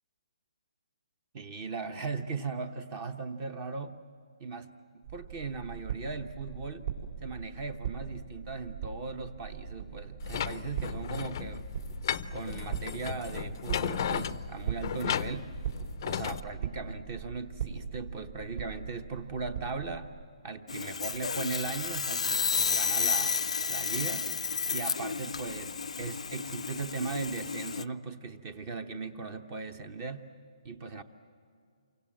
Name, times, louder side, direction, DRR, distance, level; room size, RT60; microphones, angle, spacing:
voice 1, 1.3-4.0 4.4-4.7 5.1-6.9 7.2-11.7 12.3-15.5 16.0-20.1 20.4-23.4 23.7-24.3 24.7-30.3 30.6-31.0, right 4 dB, 25° right, 10 dB, 1.0 m, -38 dB
sound 1, 5.0-20.1, right 8 dB, 50° right, 4.4 m, -40 dB
sound 2, 10.2-16.4, left 9 dB, 35° left, 0.6 m, -35 dB
Sawing, 20.7-27.8, left 5 dB, 85° left, 0.7 m, -31 dB
28.5 x 25.0 x 7.7 m, 2.3 s
hypercardioid pair, 170°, 3 cm